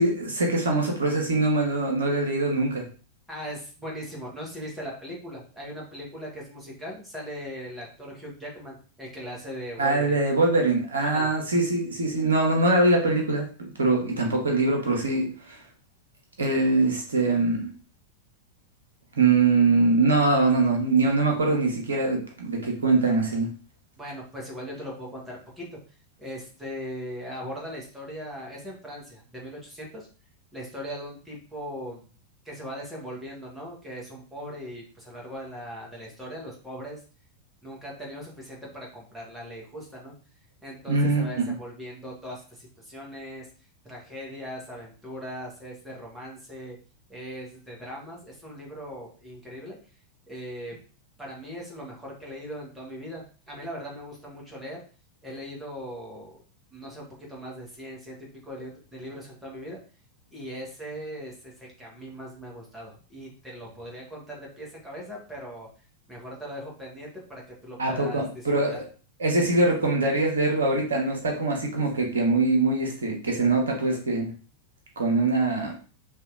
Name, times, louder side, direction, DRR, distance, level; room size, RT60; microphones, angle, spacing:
voice 1, 0.0-2.8 9.8-15.6 16.4-17.7 19.2-23.5 40.9-41.6 67.8-68.8 69.2-74.3 75.0-75.7, right 2 dB, 70° right, 1 dB, 0.8 m, -23 dB
voice 2, 3.3-10.2 11.0-11.3 24.0-25.8 26.2-30.1 30.5-32.0 32.4-37.0 37.6-40.1 40.6-43.5 43.8-46.8 47.1-49.8 50.3-50.7 51.2-54.8 55.2-56.3 56.7-58.2 58.4-59.8 60.3-65.7 66.1-68.4 68.7-68.8, equal, 5° right, -3 dB, 1.2 m, -39 dB
2.8 x 2.7 x 2.4 m, 0.39 s
figure-of-eight pair, 90°, 0 cm